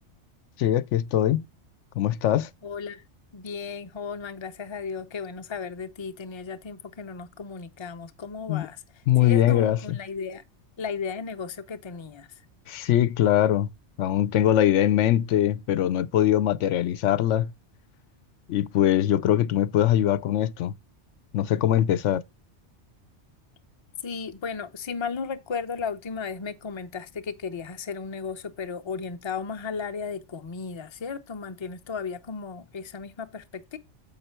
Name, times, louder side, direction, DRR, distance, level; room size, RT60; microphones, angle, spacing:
voice 1, 0.6-1.4 2.0-2.5 8.5-8.7 9.1-9.8 12.7-13.7 14.0-17.5 18.5-20.8 21.3-22.2, left 12 dB, 85° left, 0.9 m, -22 dB
voice 2, 2.6-3.0 3.3-10.4 10.8-12.4 24.0-33.8, left 5 dB, 30° left, 0.6 m, -35 dB
7.4 x 5.5 x 4.4 m
omnidirectional pair, 1.2 m